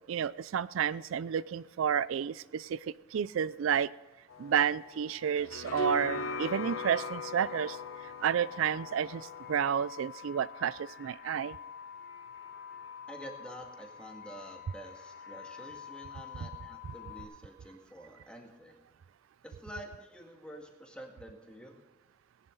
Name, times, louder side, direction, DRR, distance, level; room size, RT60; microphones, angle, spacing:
voice 1, 0.1-2.8 3.1-3.9 4.4-7.8 8.2-11.6, right 8 dB, 75° right, 18 dB, 0.3 m, -31 dB
sound 1, 4.3-9.9, left 2 dB, 90° left, 1.1 m, -40 dB
sound 2, 6.0-17.2, left 8 dB, 70° left, 3.6 m, -47 dB
voice 2, 13.1-18.8 19.4-21.7, equal, 5° left, 1 dB, 1.9 m, -48 dB
19.5 x 10.5 x 3.9 m, 1.2 s
head